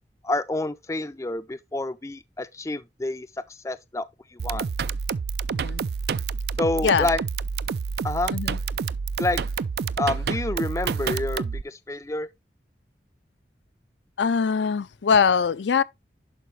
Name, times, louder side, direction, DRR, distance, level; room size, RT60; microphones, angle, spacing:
voice 1, 0.2-4.1 4.3-4.7 6.6-7.2 8.0-8.3 9.2-9.4 10.0-12.3, left 2 dB, 15° left, 0.4 m, -28 dB
sound 1, 4.4-11.6, right 5 dB, 60° right, 0.3 m, -28 dB
voice 2, 5.5-5.8 6.8-7.1 8.3-8.6 14.2-15.8, left 6 dB, 80° left, 0.5 m, -22 dB
11.0 x 5.0 x 3.2 m
head